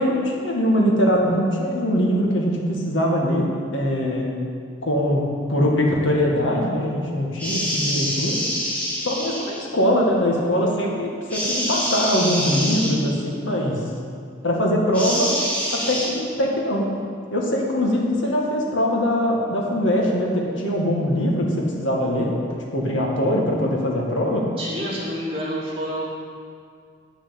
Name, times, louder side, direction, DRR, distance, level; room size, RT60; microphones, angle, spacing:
voice 1, 0.0-4.3 4.8-8.4 9.0-13.8 14.4-15.3 15.7-16.9 17.3-22.3 22.7-24.5, equal, 80° left, -1 dB, 1.8 m, -22 dB
sound 1, 7.4-9.6 11.3-12.9 14.9-16.1, equal, 10° left, 3.1 m, -26 dB
voice 2, 24.6-26.0, equal, 30° right, -7 dB, 2.7 m, -28 dB
9.3 x 6.2 x 8.2 m, 2.2 s
head